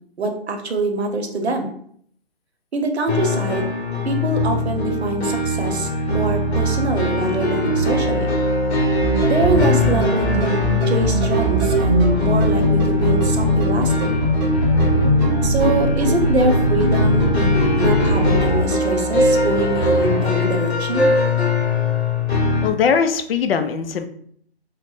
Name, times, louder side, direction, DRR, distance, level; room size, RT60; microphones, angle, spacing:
voice 1, 0.2-1.7 2.7-3.7 4.0-8.3 9.3-10.6 10.9-14.2 15.4-21.1, right 2 dB, 80° right, 4 dB, 0.8 m, -24 dB
sound 1, 3.1-22.7, left 1 dB, 80° left, 0.8 m, -21 dB
sound 2, 9.0-18.6, equal, 20° right, 0.6 m, -20 dB
voice 2, 22.6-24.1, left 6 dB, 65° left, 9 dB, 0.4 m, -20 dB
3.1 x 2.0 x 3.1 m, 0.64 s
hypercardioid pair, 145°, 32 cm